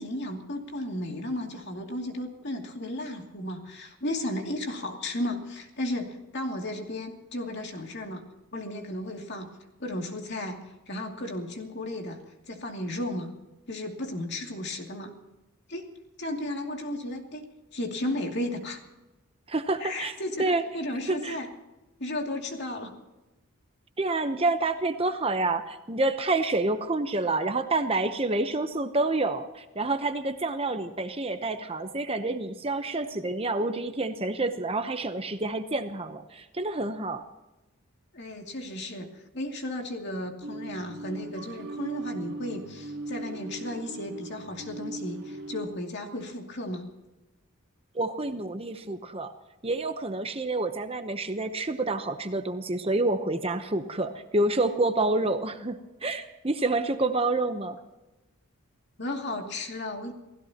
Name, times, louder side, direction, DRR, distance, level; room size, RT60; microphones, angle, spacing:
voice 1, 0.0-8.2 8.5-9.5 9.8-12.2 12.5-13.3 13.7-15.1 15.7-15.9 16.2-17.5 17.7-18.8 19.8-21.5 22.0-22.9 38.1-46.9 59.0-60.1, left 1 dB, 50° left, 2 dB, 2.6 m, -34 dB
voice 2, 19.5-20.1 20.4-20.6 21.1-21.4 24.0-37.2 47.9-49.3 49.6-57.8, right 2 dB, 25° right, 8 dB, 0.8 m, -28 dB
sound 1, 40.4-45.7, right 2 dB, 65° right, 3.2 m, -38 dB
29.0 x 16.0 x 2.9 m, 1.1 s
head